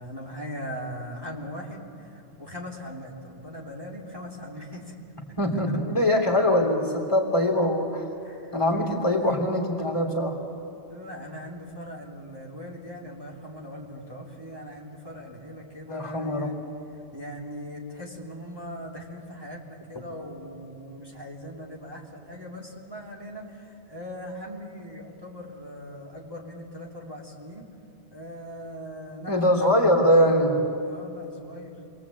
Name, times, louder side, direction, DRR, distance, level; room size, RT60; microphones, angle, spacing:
voice 1, 0.0-4.9 5.5-5.6 8.2-8.9 9.2-9.4 10.9-16.6 16.9-27.7 28.1-29.7 30.8-31.7, equal, 20° right, -4 dB, 3.1 m, -40 dB
voice 2, 5.4-8.1 8.5-10.4 15.9-16.5 29.3-30.6, equal, 25° left, 1 dB, 3.3 m, -22 dB
29.0 x 22.5 x 8.6 m, 2.8 s
omnidirectional pair, 1.2 m